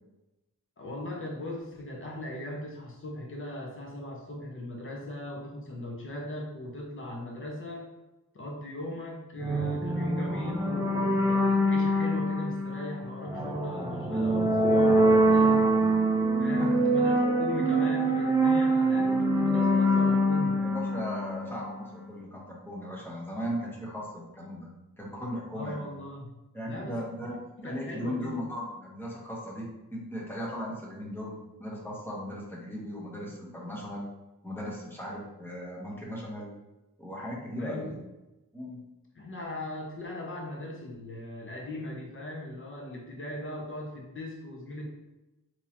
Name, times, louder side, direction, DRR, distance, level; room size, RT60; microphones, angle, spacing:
voice 1, 0.8-7.9 8.3-15.7 16.4-20.6 25.5-26.4 26.7-27.0 27.6-28.4 37.6-38.0 39.1-44.9, left 1 dB, 35° left, -1 dB, 0.8 m, -39 dB
sound 1, 9.4-21.9, right 1 dB, 10° right, 0.4 m, -25 dB
voice 2, 16.6-17.0 18.9-19.1 20.6-25.9 26.5-34.0 34.4-36.5 37.0-38.0 38.5-38.9, equal, 5° left, -4 dB, 0.9 m, -37 dB
3.5 x 2.9 x 2.8 m, 1.0 s
wide cardioid pair, 125°, 34 cm